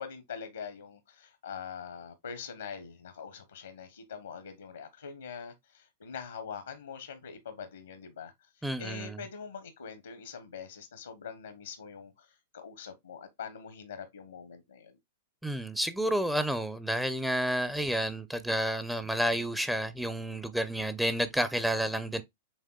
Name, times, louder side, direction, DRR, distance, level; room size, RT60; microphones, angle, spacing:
voice 1, 0.0-15.0, left 6 dB, 80° left, 0.9 m, -44 dB
voice 2, 8.6-9.1 15.4-22.2, right 1 dB, 5° right, 0.5 m, -30 dB
6.4 x 3.5 x 2.2 m
hypercardioid pair, 105°, 0 cm